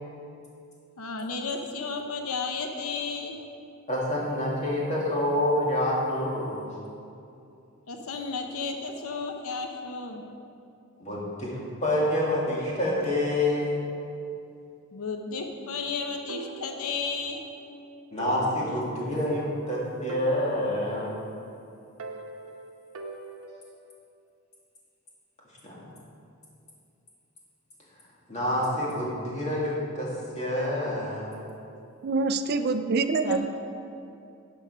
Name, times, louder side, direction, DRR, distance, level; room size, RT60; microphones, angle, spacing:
voice 1, 1.0-3.4 7.9-10.2 14.9-17.4 33.2-33.5, left 4 dB, 80° left, 4 dB, 0.8 m, -33 dB
voice 2, 3.9-6.7 11.0-13.8 18.1-21.2 25.6-25.9 28.3-30.1 30.3-31.3, left 1 dB, 30° left, -5 dB, 2.2 m, -27 dB
sound 1, 16.3-17.5 17.7-17.8 18.2-19.7 20.1-21.5 22.0-23.8, right 2 dB, 75° right, 0.9 m, -42 dB
voice 3, 32.0-33.5, right 4 dB, 45° right, 10 dB, 0.4 m, -25 dB
11.5 x 5.5 x 5.4 m, 2.6 s
head